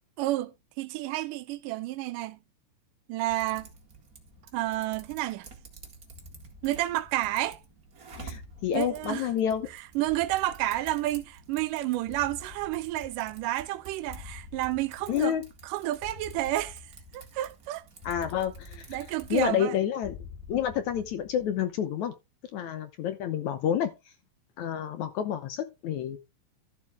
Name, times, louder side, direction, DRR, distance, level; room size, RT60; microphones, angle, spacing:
voice 1, 0.2-2.4 3.1-3.7 4.5-5.5 6.6-7.6 8.7-9.3 10.0-15.4 15.6-16.8 17.1-17.8 18.9-19.8, right 16 dB, 75° right, 2.1 m, -30 dB
Typing, 3.3-19.5, right 5 dB, 30° right, 1.9 m, -50 dB
sound 1, 4.1-5.5 6.1-7.7 8.1-9.7 10.1-11.6 12.1-13.7 14.1-15.7 16.0-17.6 18.0-19.7 20.0-21.6, left 7 dB, 90° left, 3.5 m, -49 dB
voice 2, 8.2-9.7 15.1-15.4 18.0-19.0 19.3-20.2 20.5-22.1 22.5-23.9 24.6-26.2, left 9 dB, 70° left, 2.0 m, -29 dB
13.0 x 7.3 x 3.5 m
omnidirectional pair, 4.0 m